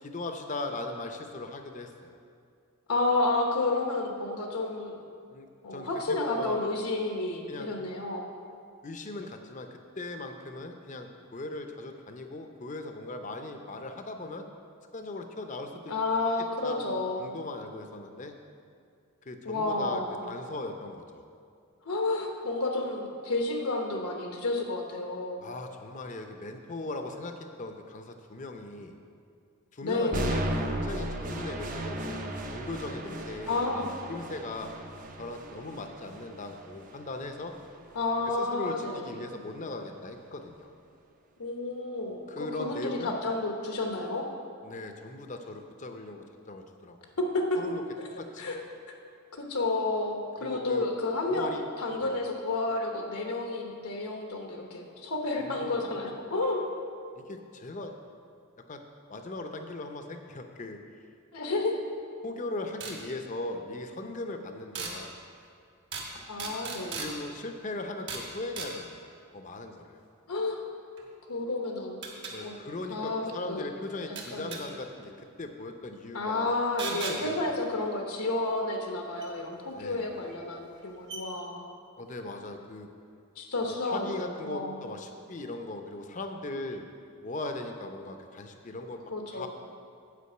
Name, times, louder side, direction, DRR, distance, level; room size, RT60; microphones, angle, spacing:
voice 1, 0.0-2.2 5.3-6.6 7.5-7.7 8.8-14.4 14.9-15.9 16.4-16.8 17.2-18.3 19.2-21.2 25.4-28.9 29.7-34.7 35.2-37.5 38.4-40.7 42.3-43.1 44.6-47.1 47.6-47.8 48.2-48.4 50.4-50.9 51.3-51.7 52.0-52.1 55.4-55.8 57.2-57.9 58.7-58.8 59.1-60.8 62.2-65.1 67.0-70.0 72.3-76.5 76.9-77.4 79.7-80.1 82.0-82.9 83.6-86.8 87.2-89.0 89.3-89.5, left 2 dB, 35° left, 5 dB, 0.6 m, -39 dB
voice 2, 2.9-5.0 5.6-8.3 15.9-17.3 19.4-20.2 21.8-25.4 29.8-30.5 33.5-33.9 37.9-39.2 41.4-44.3 47.2-47.6 48.4-48.6 49.3-56.6 61.3-61.8 66.3-67.1 70.3-70.6 71.3-72.0 72.4-72.6 72.9-73.6 74.1-74.5 76.1-81.7 83.4-84.8 89.1-89.5, left 2 dB, 80° left, 2 dB, 1.0 m, -31 dB
sound 1, 30.1-38.1, right 1 dB, 35° right, 0.6 m, -36 dB
sound 2, 62.8-63.0 64.7-64.9 65.9-66.1 66.4-67.1 68.1-68.3 68.6-68.7 71.0-71.1 72.0-72.3 74.2-74.6 76.8-77.2 79.2-79.3 80.3-80.4 80.7-80.8 81.1-81.2, right 4 dB, 50° right, 1.4 m, -36 dB
8.4 x 5.2 x 7.7 m, 2.3 s
head